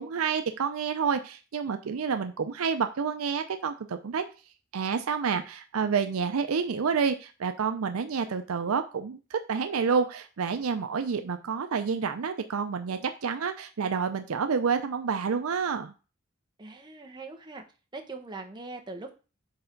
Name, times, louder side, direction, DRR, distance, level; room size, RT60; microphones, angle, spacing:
voice 1, 0.0-4.2 4.7-15.9, right 6 dB, 85° right, 8 dB, 0.5 m, -29 dB
voice 2, 16.6-17.6 17.9-19.1, right 3 dB, 20° right, 3 dB, 0.9 m, -41 dB
4.7 x 4.3 x 5.1 m, 0.34 s
head